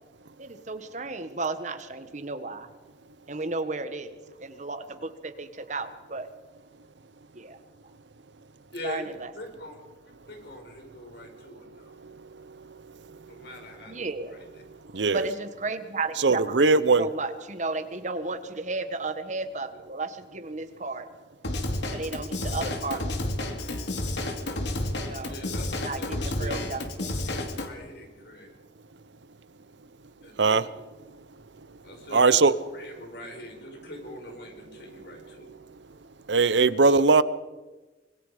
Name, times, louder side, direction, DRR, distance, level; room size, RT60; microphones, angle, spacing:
voice 1, 0.4-2.7 3.3-6.3 7.3-7.6 8.8-9.3 13.9-14.4 15.1-21.1 21.9-23.3 25.0-25.3 25.8-27.2, right 3 dB, 45° right, 10 dB, 1.5 m, -34 dB
voice 2, 8.7-9.8 10.3-11.9 13.3-14.4 25.3-25.6 26.0-26.6 27.3-28.5 30.2-30.6 31.8-32.4 32.7-35.5, left 1 dB, 65° left, 3 dB, 5.3 m, -42 dB
voice 3, 14.9-15.3 16.2-17.1 30.4-30.6 32.1-32.5 36.3-37.2, right 4 dB, 85° right, 16 dB, 0.8 m, -19 dB
Drum kit / Drum, 21.4-27.7, left 1 dB, 80° left, 2.4 m, -31 dB
25.5 x 21.5 x 5.1 m, 1.2 s
head